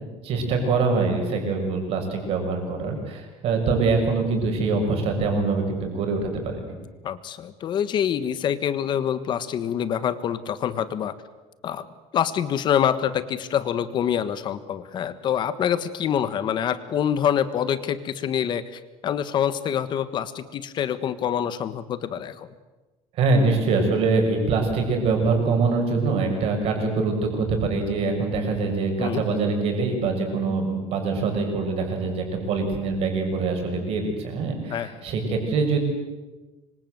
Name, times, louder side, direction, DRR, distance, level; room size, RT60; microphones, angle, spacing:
voice 1, 0.0-6.8 23.2-35.8, right 4 dB, 50° right, 3 dB, 6.7 m, -24 dB
voice 2, 7.0-11.1 11.6-11.8 12.1-18.6 19.0-22.5 29.0-29.2 34.7-34.9, left 9 dB, 40° left, 13 dB, 1.5 m, -26 dB
26.0 x 25.0 x 8.0 m, 1.2 s
cardioid pair, 170°, 12 cm